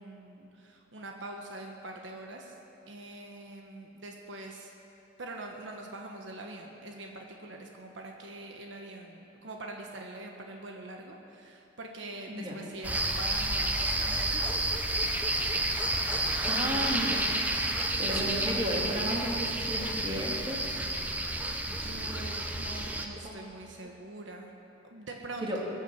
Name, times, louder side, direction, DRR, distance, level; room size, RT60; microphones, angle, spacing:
voice 1, 0.0-2.5 2.9-4.7 5.2-14.4 16.6-17.2 18.1-18.6 21.3-24.5 24.8-25.7, right 2 dB, 80° right, 1 dB, 1.2 m, -44 dB
voice 2, 12.3-12.6 16.4-17.2 18.0-20.6 23.1-23.3 25.4-25.6, equal, 30° right, -2 dB, 2.2 m, -33 dB
sound 1, 12.8-23.1, right 1 dB, 10° right, 0.8 m, -30 dB
21.5 x 7.3 x 7.5 m, 3.0 s
head